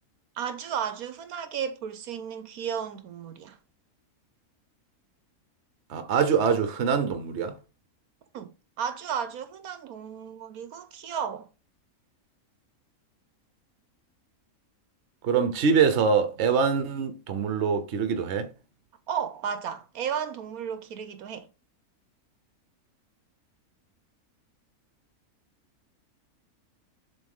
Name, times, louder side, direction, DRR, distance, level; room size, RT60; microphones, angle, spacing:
voice 1, 0.4-3.6 8.3-8.5 8.8-11.5 19.1-21.5, right 8 dB, 80° right, 1.2 m, -33 dB
voice 2, 5.9-7.6 15.2-18.5, right 6 dB, 55° right, 1.1 m, -24 dB
7.4 x 3.9 x 3.6 m
omnidirectional pair, 1.6 m